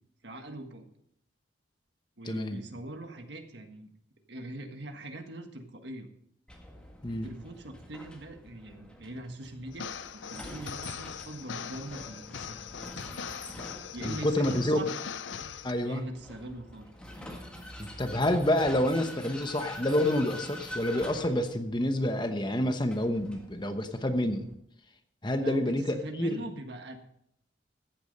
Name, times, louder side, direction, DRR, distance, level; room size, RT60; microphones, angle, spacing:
voice 1, 0.2-0.9 2.2-3.9 4.3-6.1 7.2-9.9 10.3-12.6 13.9-14.9 15.8-16.9 25.3-27.0, right 1 dB, 60° right, 5 dB, 1.6 m, -41 dB
voice 2, 2.2-2.6 7.0-7.3 14.0-14.8 15.6-16.0 17.8-24.5 25.2-26.3, left 1 dB, 25° left, 7 dB, 1.0 m, -28 dB
Vehicle, 6.5-24.5, left 1 dB, 5° left, 1.7 m, -46 dB
sound 1, 9.7-15.7, left 7 dB, 70° left, 0.6 m, -40 dB
14.5 x 8.7 x 5.3 m, 0.74 s
head